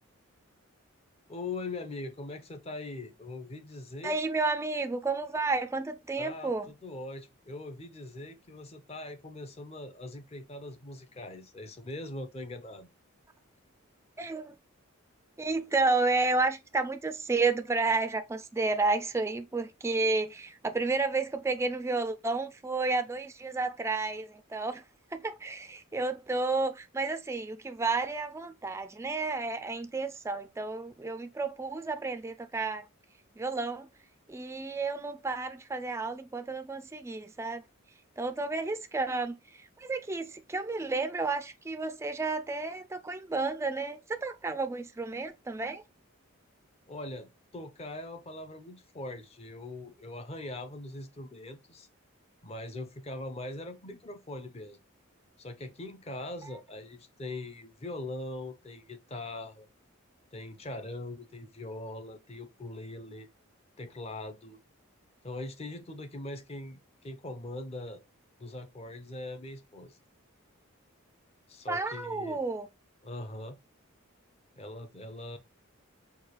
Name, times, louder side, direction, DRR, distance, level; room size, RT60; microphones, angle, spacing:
voice 1, 1.3-4.2 6.2-12.9 46.9-51.9 52.4-54.8 55.4-59.7 60.3-63.3 63.8-64.6 65.2-68.0 68.4-70.0 71.5-72.4 73.0-73.6 74.6-75.4, left 2 dB, 30° left, 0.6 m, -41 dB
voice 2, 4.0-6.7 14.2-14.5 15.4-24.8 25.1-32.9 33.4-33.9 34.3-37.6 38.2-45.8 71.7-72.7, right 3 dB, 15° right, 0.3 m, -31 dB
4.7 x 2.3 x 3.0 m
head